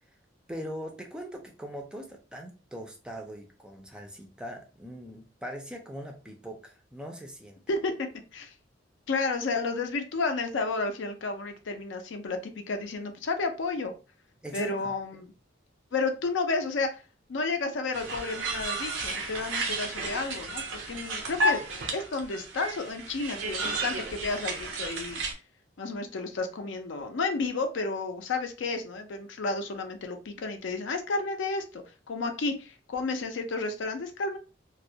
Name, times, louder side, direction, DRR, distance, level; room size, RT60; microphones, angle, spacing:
voice 1, 0.5-7.6 14.4-14.9, equal, 5° right, 2 dB, 0.3 m, -41 dB
voice 2, 7.7-8.5 9.1-12.4 12.7-13.9 14.5-15.3 15.9-17.0 17.3-20.6 20.9-25.2 25.8-31.8 32.1-34.4, left 3 dB, 75° left, 6 dB, 0.4 m, -31 dB
sound 1, 17.9-25.3, right 1 dB, 85° right, 0.5 m, -32 dB
2.3 x 2.1 x 2.6 m, 0.33 s
head